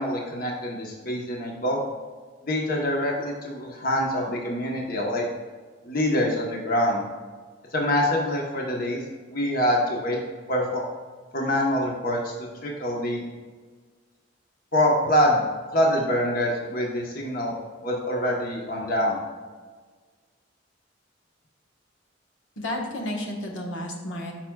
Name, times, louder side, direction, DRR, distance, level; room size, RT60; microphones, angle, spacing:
voice 1, 0.0-1.8 2.4-5.2 5.8-7.0 7.7-9.0 9.3-10.2 10.5-10.8 11.3-13.3 14.7-15.4 15.7-17.6 17.8-19.2, left 1 dB, 50° left, -1 dB, 1.1 m, -25 dB
voice 2, 22.6-24.3, left 1 dB, 80° left, 1 dB, 1.4 m, -31 dB
13.5 x 5.9 x 2.3 m, 1.5 s
head